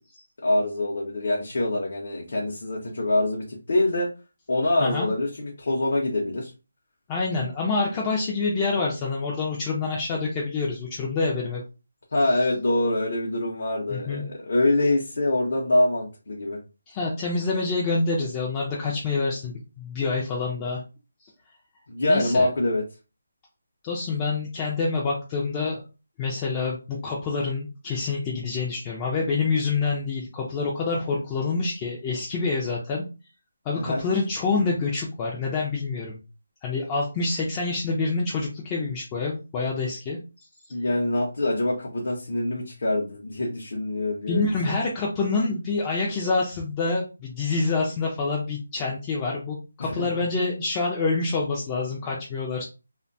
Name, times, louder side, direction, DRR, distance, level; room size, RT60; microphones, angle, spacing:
voice 1, 0.4-4.1 4.5-6.5 12.1-16.6 21.9-22.8 33.8-34.0 40.7-44.7 49.8-50.1, left 1 dB, 55° left, -2 dB, 0.6 m, -25 dB
voice 2, 7.1-11.6 13.9-14.2 16.9-20.8 22.1-22.5 23.8-25.8 26.2-33.0 33.7-36.2 36.6-40.2 44.3-52.6, left 3 dB, 15° left, -3 dB, 0.3 m, -27 dB
2.5 x 2.1 x 2.6 m, 0.31 s
figure-of-eight pair, 170°, 0 cm